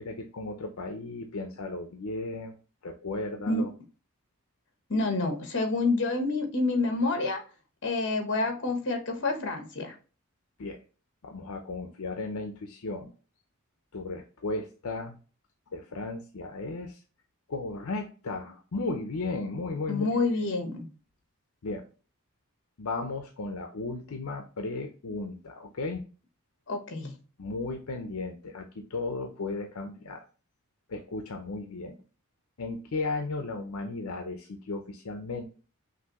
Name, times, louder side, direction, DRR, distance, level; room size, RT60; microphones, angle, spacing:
voice 1, 0.0-2.6 2.8-3.7 10.6-10.8 11.2-13.1 13.9-15.1 15.7-17.0 17.5-20.0 20.4-20.5 21.6-21.8 22.8-26.0 27.4-30.3 30.9-32.0 32.6-35.4, left 3 dB, 80° left, 5 dB, 0.6 m, -35 dB
voice 2, 4.9-7.4 7.8-9.9 19.9-20.9 26.7-27.1, left 3 dB, 55° left, 5 dB, 1.2 m, -28 dB
5.9 x 2.7 x 2.9 m, 0.36 s
head